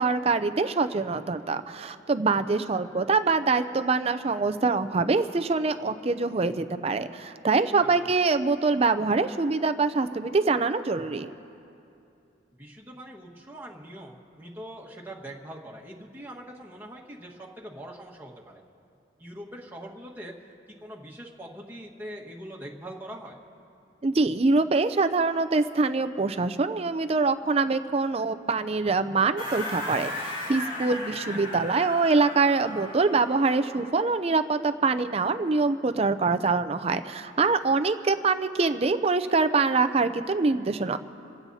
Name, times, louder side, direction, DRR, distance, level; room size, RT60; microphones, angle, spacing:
voice 1, 0.0-11.3 24.0-41.0, right 4 dB, 30° right, 9 dB, 0.5 m, -24 dB
voice 2, 7.8-8.1 12.6-18.6 19.2-23.4 31.3-31.4, right 1 dB, 10° right, -3 dB, 1.5 m, -43 dB
sound 1, 29.4-33.8, left 1 dB, 45° left, 4.8 m, -36 dB
28.0 x 16.0 x 2.8 m, 2.6 s
head